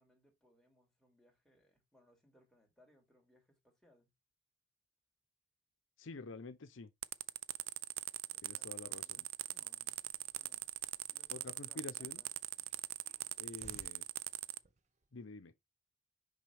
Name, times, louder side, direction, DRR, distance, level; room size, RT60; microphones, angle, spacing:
voice 1, 0.0-4.1 8.3-10.0 10.3-10.6 11.1-12.4 13.6-13.9, equal, ahead, 2.7 m, -70 dB
voice 2, 6.0-6.9 8.4-9.2 11.3-12.2 13.4-14.0 15.1-15.5, left 3 dB, 80° left, 0.7 m, -48 dB
sound 1, 7.0-14.6, right 16 dB, 85° right, 0.4 m, -41 dB
Hiss, 9.7-15.2, right 2 dB, 35° right, 0.9 m, -64 dB
5.9 x 5.5 x 3.4 m
head